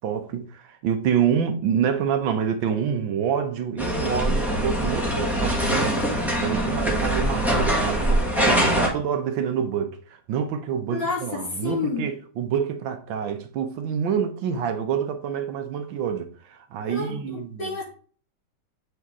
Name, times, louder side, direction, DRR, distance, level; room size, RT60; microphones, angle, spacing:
voice 1, 0.0-6.1 6.4-10.0 10.3-17.7, right 8 dB, 85° right, 1.5 m, -27 dB
sound 1, 3.8-8.9, right 1 dB, ahead, 1.0 m, -23 dB
voice 2, 10.9-12.1 16.8-17.8, left 4 dB, 50° left, 3.6 m, -29 dB
8.1 x 3.7 x 3.6 m
omnidirectional pair, 2.1 m